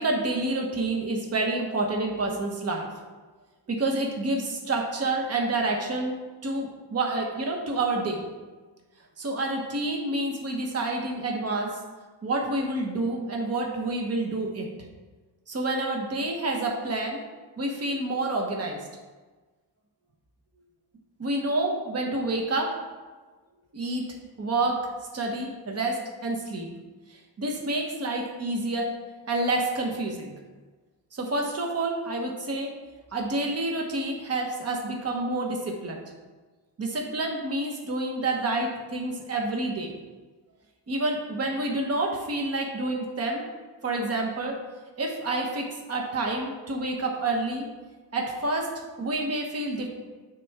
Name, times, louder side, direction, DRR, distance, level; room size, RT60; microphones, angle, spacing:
voice 1, 0.0-2.9 3.7-6.2 6.4-8.2 9.2-11.8 12.2-14.7 15.5-17.2 17.6-18.8 21.2-22.8 23.7-24.9 25.1-26.7 27.4-28.9 29.3-30.3 31.1-32.7 33.1-36.0 36.8-39.9 40.9-43.4 43.8-44.6 45.0-47.7 48.1-48.7 49.0-49.9, right 2 dB, 35° right, 1 dB, 1.1 m, -28 dB
8.6 x 6.3 x 3.5 m, 1.3 s
wide cardioid pair, 135°, 41 cm